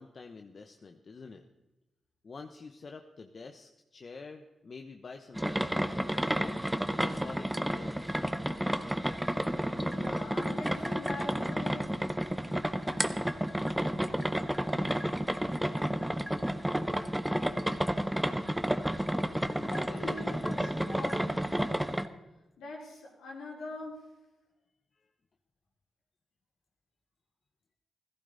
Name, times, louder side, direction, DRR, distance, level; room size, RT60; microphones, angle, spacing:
voice 1, 0.0-1.4 2.2-8.3 19.2-19.4 19.8-20.1, left 4 dB, 55° left, 5 dB, 1.0 m, -48 dB
sound 1, 5.4-22.1, equal, 10° right, 1.2 m, -31 dB
voice 2, 9.9-12.0 19.6-21.9 22.6-24.1, left 2 dB, 85° left, -3 dB, 4.5 m, -43 dB
17.0 x 15.0 x 4.1 m, 0.99 s
supercardioid pair, 40°, 0 cm